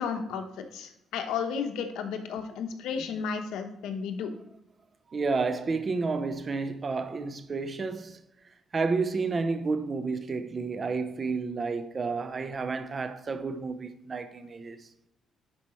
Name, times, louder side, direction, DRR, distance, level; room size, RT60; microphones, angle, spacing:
voice 1, 0.0-4.3, left 6 dB, 85° left, 1.0 m, -33 dB
voice 2, 5.1-8.2 8.7-14.9, right 4 dB, 40° right, 0.7 m, -31 dB
11.0 x 4.9 x 3.1 m
cardioid pair, 90°, 0 cm